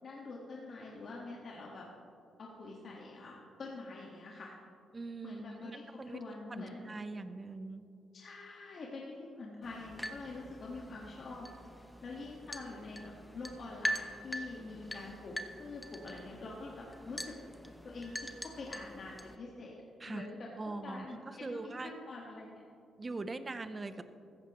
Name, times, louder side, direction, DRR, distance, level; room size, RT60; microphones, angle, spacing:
voice 1, 0.0-1.8 2.4-4.5 5.2-6.9 8.1-11.5 12.0-17.3 17.8-19.8 20.1-22.6, left 3 dB, 50° left, -3 dB, 1.6 m, -46 dB
voice 2, 4.9-5.7 6.0-6.2 6.5-7.8 20.0-20.3 20.6-21.9 23.0-24.0, right 3 dB, 25° right, 11 dB, 0.7 m, -42 dB
sound 1, 9.6-19.4, equal, ahead, 0.8 m, -43 dB
15.5 x 14.0 x 3.1 m, 2.6 s
cardioid pair, 110°, 0 cm